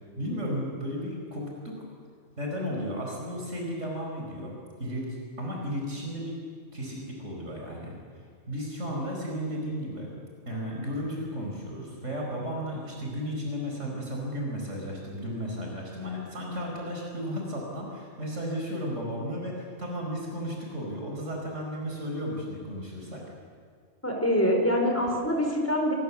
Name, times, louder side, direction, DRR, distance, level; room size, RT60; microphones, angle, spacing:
voice 1, 0.2-1.8 2.4-4.5 4.8-5.1 5.4-6.4 6.7-7.9 8.5-10.1 10.5-23.2, equal, 75° right, -1 dB, 5.4 m, -34 dB
voice 2, 24.0-25.9, equal, 10° left, 1 dB, 4.6 m, -25 dB
26.5 x 22.0 x 7.3 m, 2.1 s
omnidirectional pair, 1.3 m